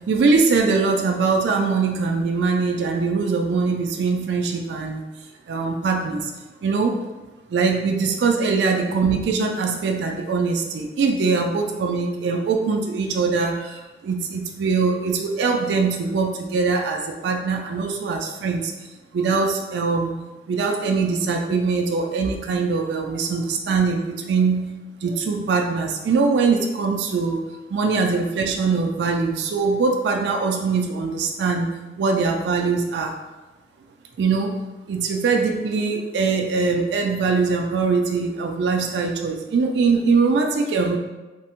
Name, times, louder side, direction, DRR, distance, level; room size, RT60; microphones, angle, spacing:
voice 1, 0.1-5.0 5.5-6.3 6.6-7.0 7.5-18.7 19.1-20.1 20.5-24.7 25.0-27.4 27.7-31.7 32.0-33.1 34.2-34.5 34.9-41.0, right 4 dB, 70° right, 2 dB, 0.3 m, -22 dB
3.3 x 2.0 x 2.9 m, 1.2 s
head